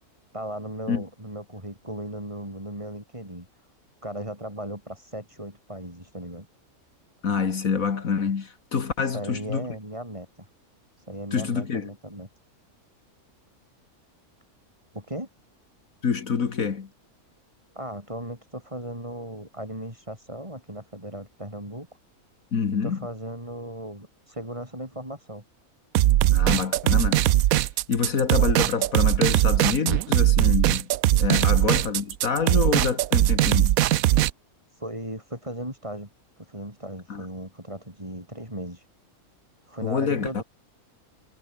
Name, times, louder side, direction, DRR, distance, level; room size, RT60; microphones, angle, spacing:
voice 1, 0.3-3.5 4.0-6.5 9.0-10.5 11.1-12.3 14.9-15.3 17.7-21.9 22.7-25.4 31.1-31.5 34.7-36.1 36.4-38.9 39.7-40.4, right 1 dB, 20° right, 7.2 m, -37 dB
voice 2, 7.2-9.7 11.3-11.9 16.0-16.9 22.5-23.0 26.3-27.3 27.9-30.9 31.2-33.8 37.1-37.2 39.8-40.4, left 6 dB, 65° left, 2.0 m, -26 dB
sound 1, 25.9-34.3, right 14 dB, 70° right, 1.0 m, -20 dB
omnidirectional pair, 1.6 m